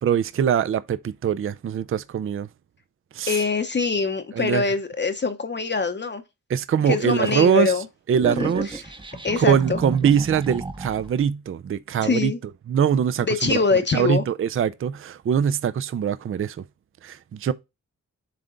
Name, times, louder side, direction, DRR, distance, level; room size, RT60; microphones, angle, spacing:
voice 1, 0.0-2.5 3.1-3.4 4.3-4.6 6.5-7.7 8.1-8.8 9.4-12.3 12.7-13.6 13.9-16.6 17.0-17.5, right 8 dB, 45° right, 0.4 m, -22 dB
voice 2, 3.3-6.2 6.9-7.9 8.3-8.5 9.2-9.8 12.0-12.4 13.2-14.2, left 4 dB, 35° left, 0.7 m, -23 dB
sound 1, 8.1-11.2, right 2 dB, 15° right, 0.7 m, -32 dB
7.6 x 3.4 x 3.8 m
wide cardioid pair, 125°, 31 cm